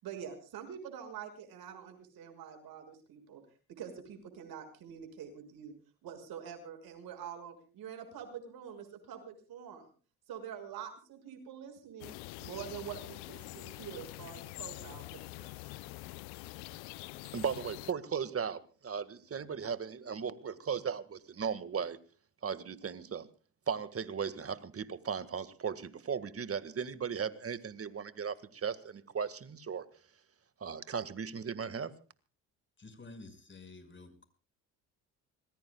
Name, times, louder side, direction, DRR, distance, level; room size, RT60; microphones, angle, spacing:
voice 1, 0.0-3.4 3.8-5.7 6.0-9.9 10.3-15.7, right 8 dB, 70° right, 6.2 m, -46 dB
sound 1, 12.0-17.9, left 21 dB, 80° left, 0.7 m, -45 dB
voice 2, 17.3-22.0 22.4-23.3 23.7-29.9 30.6-31.9, right 6 dB, 35° right, 1.8 m, -37 dB
voice 3, 32.8-34.2, left 3 dB, 30° left, 5.9 m, -51 dB
26.0 x 20.0 x 2.3 m
supercardioid pair, 65°, 38 cm